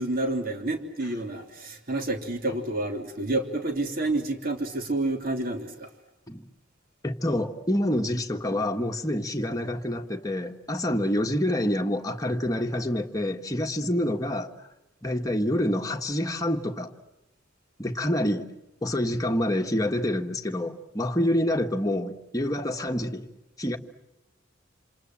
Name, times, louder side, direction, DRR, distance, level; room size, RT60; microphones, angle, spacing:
voice 1, 0.0-5.9, right 2 dB, 50° right, 4 dB, 3.3 m, -29 dB
voice 2, 7.0-14.5 15.0-16.9 17.8-18.5 18.8-23.3 23.6-23.8, left 1 dB, 20° left, 3 dB, 1.6 m, -27 dB
27.5 x 27.5 x 7.6 m, 0.99 s
head